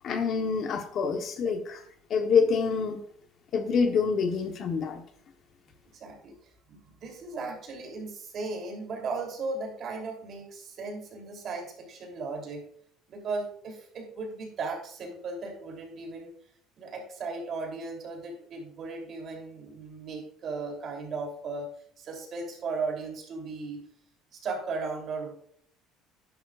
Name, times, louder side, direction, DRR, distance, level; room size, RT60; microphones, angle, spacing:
voice 1, 0.0-1.8 2.1-3.0 3.5-5.0, left 5 dB, 45° left, 6 dB, 1.1 m, -26 dB
voice 2, 5.9-6.3 6.7-12.6 13.1-16.3 16.8-21.7 22.0-23.8 24.3-25.3, right 3 dB, 45° right, 2 dB, 3.2 m, -36 dB
11.5 x 10.0 x 2.5 m, 0.63 s
cardioid pair, 135°, 0 cm